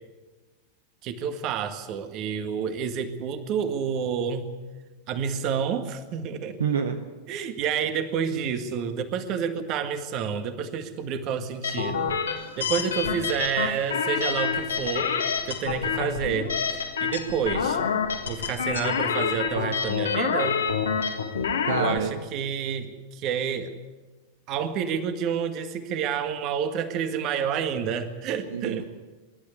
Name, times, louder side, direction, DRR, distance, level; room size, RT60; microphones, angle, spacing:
voice 1, 1.0-4.5 5.1-6.6 7.3-12.2 12.6-15.1 15.5-17.8 18.3-20.6 21.7-23.7 24.5-28.8, right 7 dB, 40° right, 9 dB, 1.9 m, -29 dB
voice 2, 6.6-7.0 21.0-21.1 21.7-22.1 28.5-28.8, right 6 dB, 65° right, 7 dB, 1.2 m, -27 dB
sound 1, 11.6-22.0, left 6 dB, 70° left, 1.9 m, -27 dB
25.0 x 12.0 x 9.5 m, 1.3 s
figure-of-eight pair, 90°, 0 cm